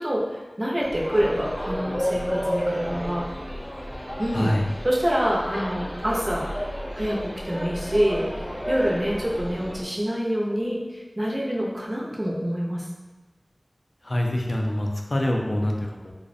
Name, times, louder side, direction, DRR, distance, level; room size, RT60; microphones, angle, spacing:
voice 1, 0.0-3.2 4.2-4.5 4.8-6.5 6.9-12.9, equal, 40° right, -4 dB, 0.5 m, -26 dB
sound 1, 0.8-9.8, equal, 20° left, 0.7 m, -31 dB
voice 2, 4.3-4.6 14.0-16.1, left 1 dB, 55° left, 0 dB, 0.3 m, -25 dB
2.4 x 2.0 x 2.5 m, 1.2 s
wide cardioid pair, 50°, 0 cm